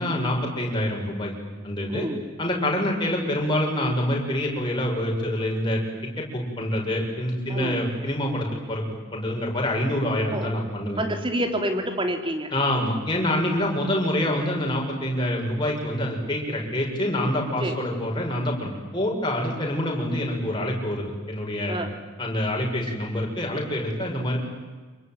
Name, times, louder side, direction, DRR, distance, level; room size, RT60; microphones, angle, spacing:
voice 1, 0.0-1.3 1.6-2.1 2.4-11.0 12.5-21.8 22.2-24.4, left 1 dB, 20° left, -1 dB, 6.9 m, -26 dB
voice 2, 1.9-2.2 7.5-7.8 10.3-10.5 11.0-12.5 17.6-17.9 21.7-21.9, right 1 dB, 25° right, 6 dB, 3.3 m, -28 dB
27.0 x 23.5 x 9.4 m, 1.4 s
head